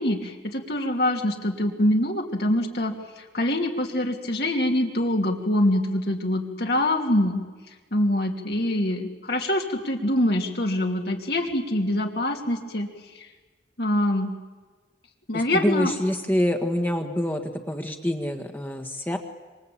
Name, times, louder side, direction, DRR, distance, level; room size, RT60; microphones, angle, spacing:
voice 1, 0.0-7.4 7.9-12.9 13.1-13.3 13.8-14.3 15.3-15.9, left 1 dB, 65° left, 2 dB, 3.0 m, -24 dB
voice 2, 15.3-19.2, equal, 10° left, 5 dB, 1.7 m, -26 dB
26.5 x 25.5 x 8.8 m, 1.4 s
head